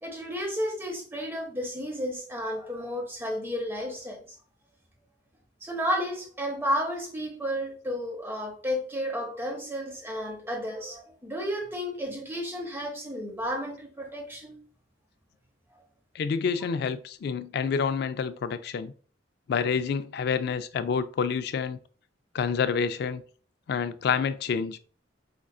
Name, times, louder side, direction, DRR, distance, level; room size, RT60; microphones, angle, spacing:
voice 1, 0.0-4.4 5.6-14.6, equal, 10° right, 0.8 m, -32 dB
voice 2, 16.1-18.9 19.5-21.8 22.3-23.2 23.7-24.8, left 6 dB, 55° left, 0.3 m, -28 dB
5.2 x 2.4 x 2.3 m
head